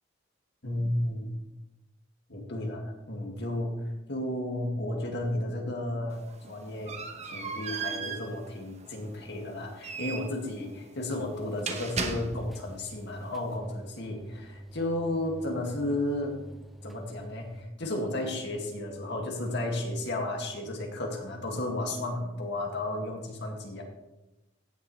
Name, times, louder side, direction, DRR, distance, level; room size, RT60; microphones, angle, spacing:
voice 1, 0.6-1.4 2.3-3.8 4.1-6.2 6.5-7.0 7.2-16.4 16.8-23.8, left 1 dB, 60° left, 1 dB, 2.0 m, -33 dB
sound 1, 6.1-12.7, right 5 dB, 35° right, 0.9 m, -38 dB
sound 2, 11.1-17.6, right 1 dB, ahead, 0.5 m, -47 dB
16.5 x 7.0 x 3.2 m, 1.0 s
head